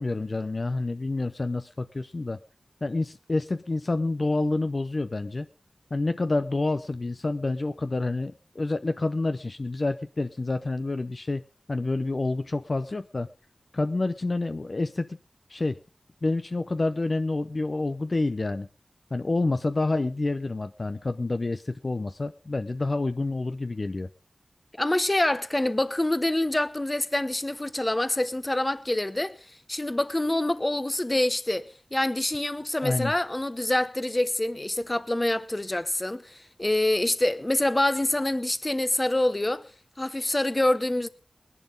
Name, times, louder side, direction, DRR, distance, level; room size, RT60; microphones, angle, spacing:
voice 1, 0.0-2.4 2.8-5.5 5.9-13.3 13.7-15.2 15.5-15.8 16.2-18.7 19.1-24.1 32.8-33.1, left 2 dB, 50° left, 0.7 m, -28 dB
voice 2, 24.8-29.4 29.7-39.6 40.0-41.1, left 1 dB, 25° left, 0.9 m, -26 dB
20.5 x 11.0 x 3.9 m
wide cardioid pair, 70°, 0 cm